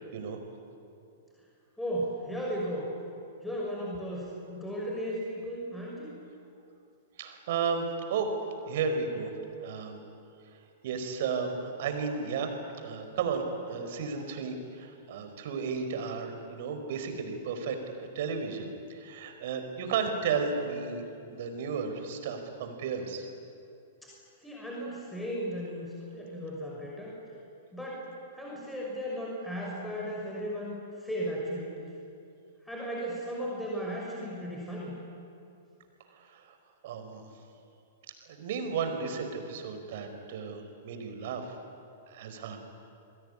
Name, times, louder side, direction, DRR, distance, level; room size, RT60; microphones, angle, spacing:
voice 1, 1.8-2.9 3.4-6.2 24.0-24.1 24.4-27.1 27.7-28.1 28.3-31.8 32.7-34.9, equal, 5° left, -4 dB, 6.0 m, -35 dB
voice 2, 7.2-8.3 8.7-9.3 9.6-10.0 10.8-21.0 21.3-23.3 36.2-36.6 36.8-37.3 38.3-41.5 42.1-42.6, right 5 dB, 55° right, 6 dB, 4.8 m, -33 dB
28.0 x 21.5 x 9.9 m, 2.6 s
figure-of-eight pair, 105°, 0 cm